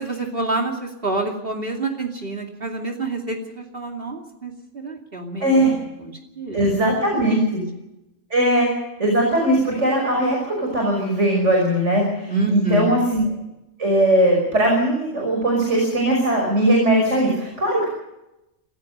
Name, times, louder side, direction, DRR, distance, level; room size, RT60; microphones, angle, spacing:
voice 1, 0.0-5.6 6.0-6.6 7.1-7.4 12.3-13.0, right 2 dB, 50° right, 1 dB, 2.8 m, -27 dB
voice 2, 6.5-7.6 8.3-8.7 9.0-13.2 13.8-17.8, right 1 dB, 70° right, 0 dB, 6.0 m, -19 dB
27.0 x 15.5 x 6.7 m, 0.90 s
omnidirectional pair, 1.3 m